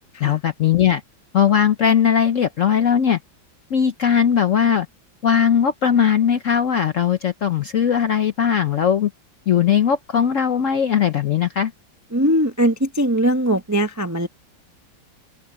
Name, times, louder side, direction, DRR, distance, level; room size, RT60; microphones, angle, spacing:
voice 1, 0.2-1.0 1.3-3.2 3.7-4.9 5.2-9.1 9.5-11.7, left 8 dB, 60° left, 0.8 m, -19 dB
voice 2, 12.1-14.3, right 1 dB, 20° right, 0.5 m, -20 dB
open air
omnidirectional pair, 2.1 m